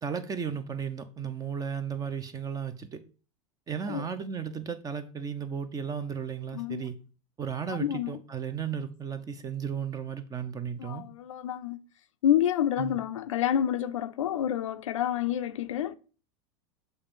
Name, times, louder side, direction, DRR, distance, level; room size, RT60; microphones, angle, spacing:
voice 1, 0.0-3.0 3.7-6.9 7.4-11.0 12.8-13.0, right 7 dB, 20° right, 0.8 m, -34 dB
voice 2, 6.5-6.8 7.8-8.1 10.8-11.8 12.2-16.0, left 10 dB, 85° left, 0.5 m, -28 dB
6.7 x 2.7 x 5.4 m
hypercardioid pair, 100°, 16 cm